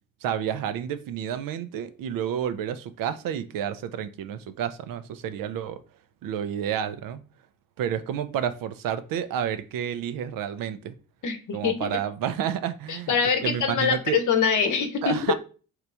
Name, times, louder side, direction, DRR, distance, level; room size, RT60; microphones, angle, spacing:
voice 1, 0.2-5.8 6.2-7.2 7.8-10.9 11.5-13.1 13.4-14.2 15.0-15.3, right 9 dB, 60° right, 0.5 m, -30 dB
voice 2, 11.2-12.0 12.9-15.2, left 6 dB, 50° left, 0.8 m, -24 dB
3.0 x 2.4 x 3.3 m
hypercardioid pair, 55°, 39 cm